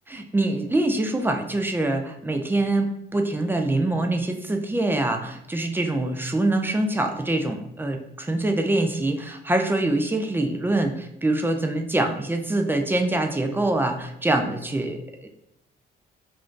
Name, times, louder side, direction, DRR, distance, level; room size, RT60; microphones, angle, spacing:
voice 1, 0.1-15.3, right 2 dB, 10° right, 5 dB, 0.3 m, -24 dB
2.5 x 2.3 x 3.6 m, 0.80 s
cardioid pair, 90°, 20 cm